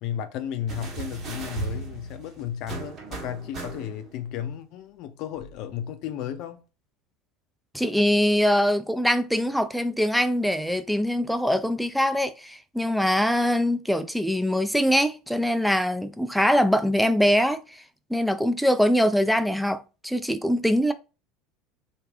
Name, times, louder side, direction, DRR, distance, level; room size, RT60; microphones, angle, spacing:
voice 1, 0.0-6.6, left 9 dB, 60° left, 0.5 m, -33 dB
sound 1, 0.7-4.2 5.4-5.5, right 5 dB, 40° right, 1.3 m, -37 dB
voice 2, 7.7-17.8 18.1-20.9, equal, ahead, 0.4 m, -23 dB
3.3 x 2.4 x 3.4 m
supercardioid pair, 105°, 0 cm